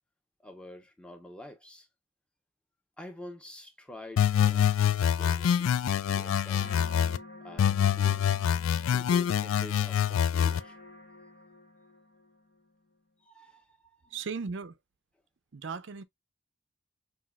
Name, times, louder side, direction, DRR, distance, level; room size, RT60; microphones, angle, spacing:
voice 1, 0.4-1.9 3.0-6.7 7.4-8.2 8.9-10.8 13.2-14.2, left 1 dB, 5° left, 0.9 m, -48 dB
sound 1, 4.2-7.2 7.6-10.6, left 9 dB, 80° left, 0.3 m, -25 dB
sound 2, 6.6-12.7, left 2 dB, 60° left, 0.9 m, -50 dB
voice 2, 14.1-14.8 15.5-16.0, right 5 dB, 65° right, 0.5 m, -36 dB
5.7 x 2.8 x 2.3 m
head